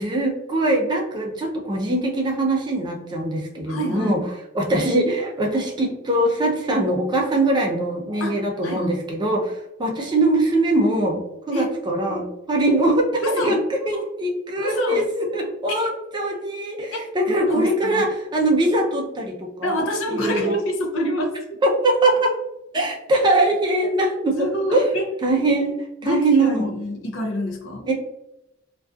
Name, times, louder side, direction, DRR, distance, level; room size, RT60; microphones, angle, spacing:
voice 1, 0.0-4.2 4.5-13.6 13.9-20.6 21.6-22.3 22.7-24.9 25.2-25.8 26.0-26.7 27.9-28.0, right 2 dB, 20° right, 0 dB, 0.4 m, -22 dB
voice 2, 3.7-4.2 8.2-8.9 11.5-11.7 13.2-13.6 14.6-15.0 15.7-15.9 16.9-17.0 17.5-18.1 19.6-21.6 24.4-25.1 26.0-27.9, equal, 75° left, 2 dB, 0.5 m, -27 dB
2.3 x 2.3 x 2.4 m, 0.88 s
head